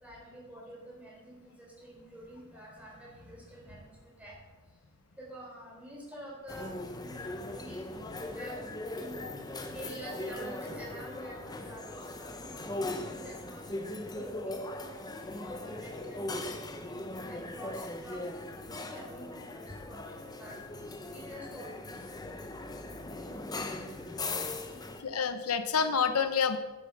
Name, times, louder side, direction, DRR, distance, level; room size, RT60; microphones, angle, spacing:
voice 1, 0.0-4.3 5.2-6.7 7.0-9.3 9.7-14.9 15.4-18.2 18.5-20.5 21.1-22.2, right 1 dB, 5° right, -4 dB, 4.2 m, -48 dB
sound 1, 6.5-25.0, left 2 dB, 20° left, 0.9 m, -39 dB
voice 2, 25.0-26.6, left 6 dB, 85° left, 9 dB, 0.8 m, -28 dB
9.9 x 8.4 x 6.6 m, 1.2 s
head